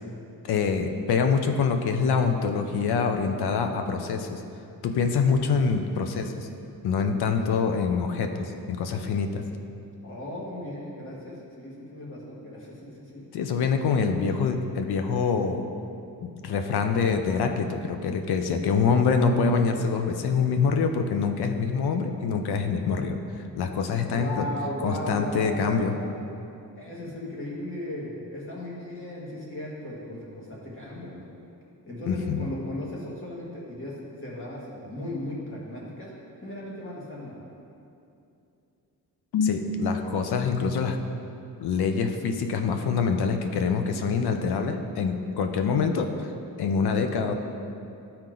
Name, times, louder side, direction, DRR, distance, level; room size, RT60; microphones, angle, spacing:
voice 1, 0.4-4.4 4.8-6.5 6.8-9.4 13.3-15.6 16.2-24.4 24.8-25.9 32.1-32.5 39.3-41.0 41.6-46.3 46.6-47.3, left 5 dB, 85° left, 6 dB, 0.7 m, -25 dB
voice 2, 10.0-13.3 14.2-14.6 24.1-26.0 26.8-31.3 31.9-33.9 34.2-36.1 36.4-37.4, left 1 dB, 35° left, -5 dB, 1.8 m, -36 dB
12.5 x 4.4 x 3.8 m, 2.7 s
wide cardioid pair, 160°, 38 cm